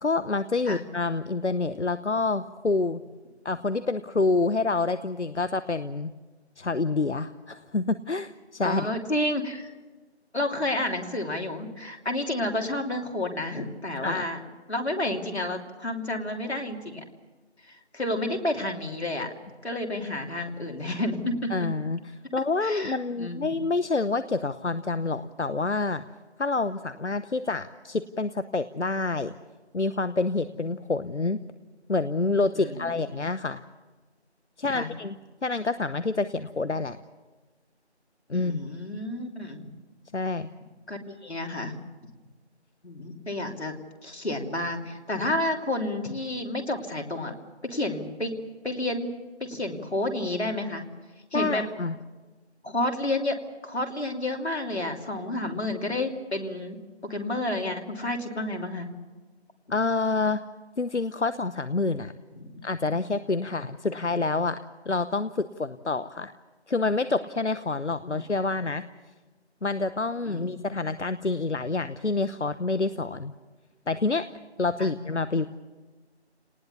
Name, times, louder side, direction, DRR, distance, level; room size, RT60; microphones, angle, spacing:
voice 1, 0.0-3.0 3.4-6.1 6.6-8.9 14.0-14.3 21.5-22.0 22.3-26.0 26.4-29.3 29.7-31.4 31.9-33.6 34.6-35.2 35.4-37.0 38.3-38.6 40.1-40.5 51.3-51.9 59.7-60.4 60.8-62.1 62.6-66.3 66.7-68.8 69.6-73.3 73.9-74.3 74.6-75.5, left 3 dB, 90° left, 13 dB, 0.9 m, -27 dB
voice 2, 8.6-9.7 10.3-14.4 14.7-17.0 17.7-19.3 19.6-21.5 22.6-23.6 32.6-32.9 34.7-34.9 38.3-39.7 40.9-41.8 42.8-43.7 44.0-47.3 47.6-48.3 48.6-49.1 49.4-50.8 51.3-51.6 52.6-56.8 57.0-58.9 62.4-62.5 68.0-68.2 70.3-70.7 74.8-74.9, left 1 dB, 70° left, 3 dB, 3.1 m, -30 dB
27.0 x 19.5 x 7.0 m, 1.3 s
figure-of-eight pair, 170°, 34 cm